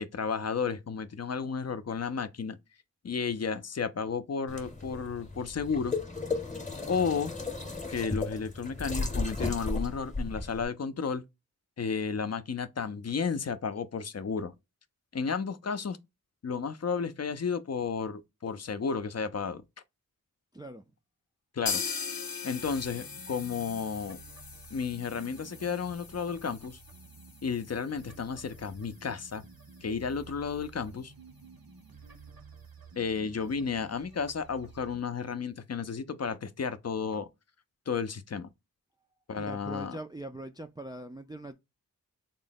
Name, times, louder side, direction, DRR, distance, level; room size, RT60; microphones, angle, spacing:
voice 1, 0.0-2.6 3.0-6.0 6.9-7.3 7.9-11.2 11.8-14.5 15.1-16.0 16.4-19.6 21.5-22.0 22.4-24.2 24.7-26.8 27.4-29.4 29.8-31.1 33.0-37.3 37.9-38.5 39.3-40.0, left 5 dB, 45° left, 0.5 m, -32 dB
sound 1, 4.5-10.6, left 3 dB, 20° left, 0.8 m, -35 dB
voice 2, 20.5-20.8 39.4-41.5, right 2 dB, 10° right, 0.3 m, -41 dB
sound 2, 21.7-29.4 29.7-29.8 30.1-30.2 30.6-30.7, left 5 dB, 80° left, 0.7 m, -40 dB
sound 3, 22.6-35.0, right 4 dB, 85° right, 0.8 m, -52 dB
3.7 x 2.1 x 3.9 m
wide cardioid pair, 40°, 35 cm